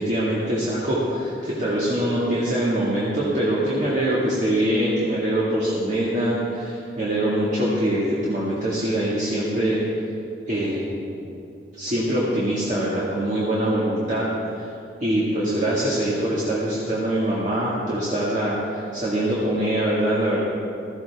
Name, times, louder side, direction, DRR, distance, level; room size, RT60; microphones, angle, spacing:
voice 1, 0.0-9.8 10.5-10.9 11.8-14.6 15.0-20.4, right 1 dB, 45° right, -7 dB, 2.0 m, -23 dB
16.0 x 14.0 x 3.5 m, 2.6 s
head